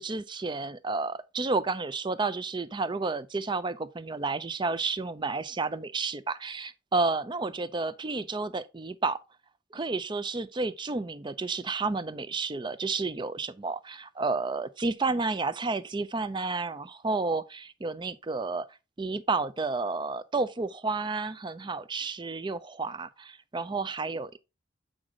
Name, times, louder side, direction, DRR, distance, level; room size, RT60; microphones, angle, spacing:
voice 1, 0.0-9.2 9.7-18.7 19.0-24.4, right 3 dB, 20° right, 0.4 m, -31 dB
7.9 x 4.9 x 3.6 m
head